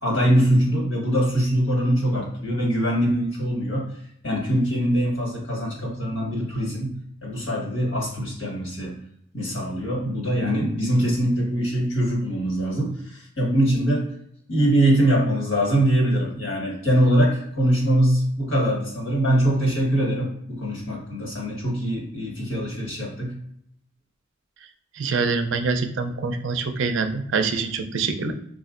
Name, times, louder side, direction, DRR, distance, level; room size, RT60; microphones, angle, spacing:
voice 1, 0.0-3.9 4.2-9.0 9.3-14.1 14.5-23.3, right 1 dB, 80° left, -2 dB, 1.4 m, -23 dB
voice 2, 25.0-28.3, right 4 dB, 65° right, 6 dB, 0.4 m, -25 dB
4.2 x 2.4 x 2.5 m, 0.72 s
head